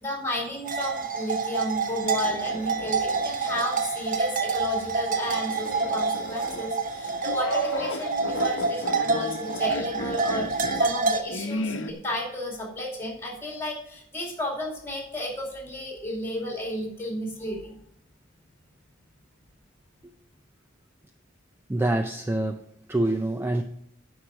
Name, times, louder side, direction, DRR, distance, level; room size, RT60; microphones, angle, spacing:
voice 1, 0.0-10.5 10.8-17.7, left 1 dB, 15° left, -1 dB, 2.6 m, -33 dB
sound 1, 0.6-11.2, right 4 dB, 45° right, 0.8 m, -27 dB
sound 2, 2.0-3.6 4.0-4.1 5.2-11.9, left 1 dB, 65° left, 0.9 m, -34 dB
voice 2, 21.7-22.6 22.9-23.6, right 1 dB, 10° right, 6 dB, 0.4 m, -25 dB
10.0 x 4.7 x 6.9 m, 0.74 s
head